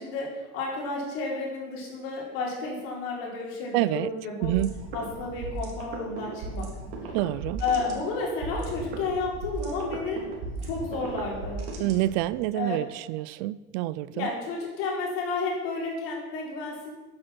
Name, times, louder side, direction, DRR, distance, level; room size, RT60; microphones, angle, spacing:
voice 1, 0.0-4.5 4.9-6.7 7.6-10.2 10.6-11.6 12.5-12.8 14.1-16.9, left 3 dB, 50° left, -1 dB, 4.5 m, -31 dB
voice 2, 3.7-4.1 4.4-4.7 7.1-7.6 11.8-14.3, right 16 dB, 55° right, 18 dB, 0.6 m, -27 dB
sound 1, 4.4-12.4, right 3 dB, 70° right, 3.5 m, -36 dB
13.5 x 9.8 x 6.0 m, 1.3 s
supercardioid pair, 160°, 29 cm